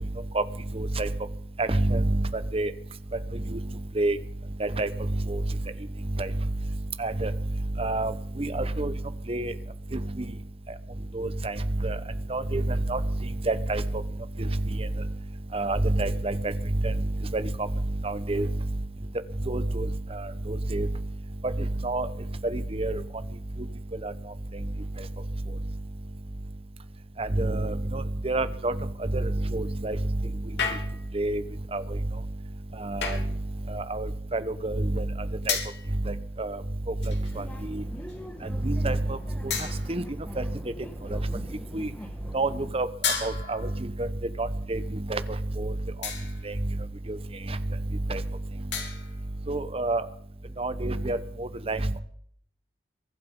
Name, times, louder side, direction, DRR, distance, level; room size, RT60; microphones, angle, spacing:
voice 1, 0.7-1.1 1.6-2.7 3.5-3.6 3.9-4.2 4.6-5.4 6.2-6.3 7.0-7.3 7.8-8.9 9.3-9.5 9.9-10.2 11.1-12.0 12.3-13.0 13.4-13.8 14.4-14.9 15.5-16.6 16.8-17.1 17.3-17.7 18.0-18.5 19.5-20.9 21.4-22.1 22.4-23.0 24.0-24.1 27.2-28.8 29.1-30.0 31.1-31.4 31.7-32.0 32.8-33.2 33.7-35.1 35.5-35.6 36.0-36.6 37.1-37.8 38.6-39.2 39.4-39.5 39.9-40.0 40.4-40.5 41.1-41.2 41.7-41.9 42.3-42.9 43.2-44.1 44.4-45.2 45.6-45.7 46.4-46.5 47.1-47.2 47.5-47.6 48.1-48.2 49.5-50.0 50.6-52.0, right 2 dB, 35° right, 12 dB, 1.0 m, -28 dB
sound 1, 30.6-31.2 33.0-33.4 35.5-35.9 37.0-37.4 38.1-38.2 39.5-40.1 43.0-43.8 46.0-46.5 48.7-49.2, left 6 dB, 80° left, 3.4 m, -32 dB
sound 2, 37.3-42.7, equal, 10° left, 1.4 m, -43 dB
23.0 x 11.5 x 5.4 m, 0.62 s
head